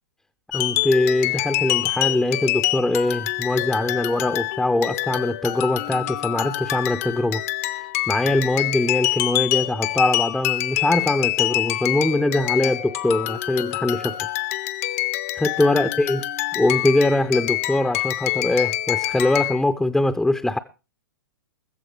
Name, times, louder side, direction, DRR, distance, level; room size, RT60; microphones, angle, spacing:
sound 1, 0.5-19.6, left 16 dB, 45° left, 0.7 m, -26 dB
voice 1, 0.5-7.4 7.7-14.2 15.3-16.3 16.5-20.6, left 2 dB, 5° left, 0.6 m, -22 dB
15.5 x 14.5 x 3.2 m
figure-of-eight pair, 105°, 11 cm